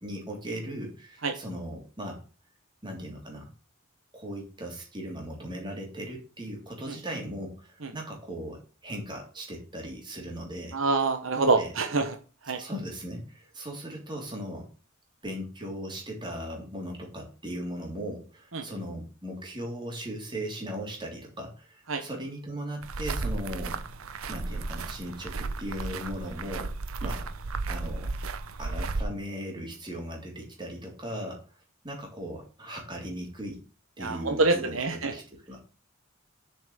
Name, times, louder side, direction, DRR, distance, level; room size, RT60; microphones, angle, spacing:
voice 1, 0.0-2.2 2.8-3.5 4.1-10.8 11.3-11.7 12.6-14.7 15.2-23.8 24.3-26.7 27.0-27.3 27.7-28.1 28.6-31.4 31.8-33.6 34.0-35.6, equal, 20° right, 0 dB, 3.2 m, -38 dB
voice 2, 10.7-12.1 12.5-12.6 18.5-18.6 21.9-22.0 34.0-35.1, right 3 dB, 70° right, 6 dB, 1.1 m, -26 dB
sound 1, 22.8-29.0, right 3 dB, 90° right, 0.8 m, -34 dB
7.2 x 5.8 x 7.3 m, 0.36 s
head